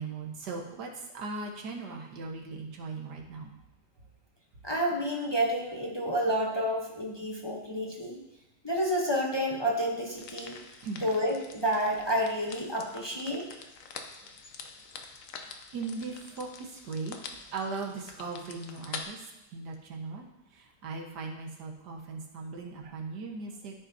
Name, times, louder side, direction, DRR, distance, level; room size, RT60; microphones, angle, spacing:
voice 1, 0.0-3.5 10.8-11.0 15.7-20.3 20.5-23.7, right 4 dB, 80° right, 1 dB, 1.8 m, -38 dB
voice 2, 4.6-8.2 8.6-10.6 11.0-13.5, equal, 20° left, -1 dB, 0.7 m, -29 dB
sound 1, 10.2-19.0, left 5 dB, 60° left, 1.0 m, -46 dB
13.5 x 5.9 x 2.7 m, 0.94 s
omnidirectional pair, 1.8 m